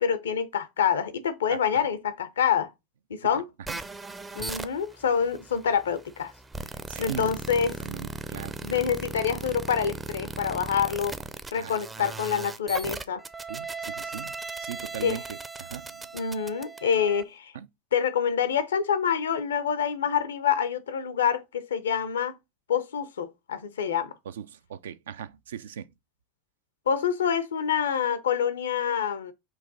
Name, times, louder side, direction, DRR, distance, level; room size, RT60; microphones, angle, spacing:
voice 1, 0.0-2.7 3.1-3.5 4.3-6.3 7.0-7.8 8.6-11.2 11.5-13.2 15.0-15.2 16.1-17.5 17.9-22.4 22.7-24.1 26.9-29.3, left 7 dB, 85° left, 0.6 m, -26 dB
sound 1, 3.6-17.2, right 3 dB, 15° right, 0.4 m, -38 dB
voice 2, 6.9-7.3 7.8-8.6 11.5-12.1 13.5-13.7 14.0-14.3 14.6-16.1 17.5-17.7 24.3-25.9, right 9 dB, 80° right, 0.4 m, -39 dB
4.7 x 2.6 x 3.9 m
hypercardioid pair, 95°, 0 cm